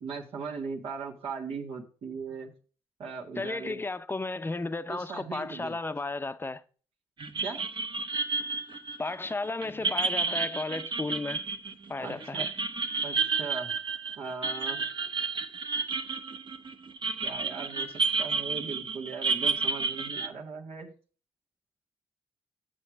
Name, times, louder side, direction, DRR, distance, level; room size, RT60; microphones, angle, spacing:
voice 1, 0.0-2.5 3.0-3.8 4.9-5.7 7.4-7.7 12.0-12.5 13.0-13.7 14.2-14.8 17.2-20.9, right 5 dB, 75° right, 1.4 m, -38 dB
voice 2, 3.4-6.6 9.0-11.4 11.9-12.5, left 3 dB, 20° left, 0.6 m, -34 dB
sound 1, 7.2-20.3, right 4 dB, 50° right, 0.9 m, -31 dB
7.7 x 6.4 x 4.6 m
cardioid pair, 65°, 10 cm